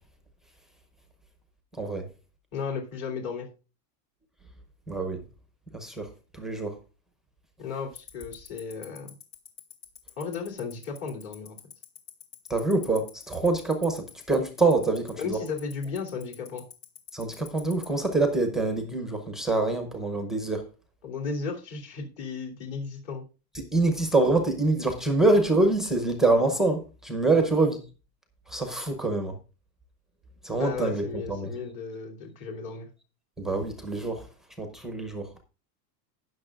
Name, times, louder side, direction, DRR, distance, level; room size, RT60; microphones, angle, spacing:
voice 1, 2.5-3.5 7.6-9.1 10.2-11.6 15.2-16.6 21.0-23.2 27.3-27.5 30.6-32.9, left 5 dB, 40° left, 3.0 m, -35 dB
voice 2, 4.9-5.2 5.7-6.1 6.3-6.7 12.5-15.4 17.1-20.6 23.7-27.8 28.5-29.3 30.4-31.5 33.4-34.2 34.6-35.4, right 2 dB, ahead, 0.7 m, -25 dB
Tick-tock, 8.0-17.8, left 10 dB, 55° left, 2.4 m, -42 dB
19.0 x 6.5 x 2.4 m
supercardioid pair, 165°, 49 cm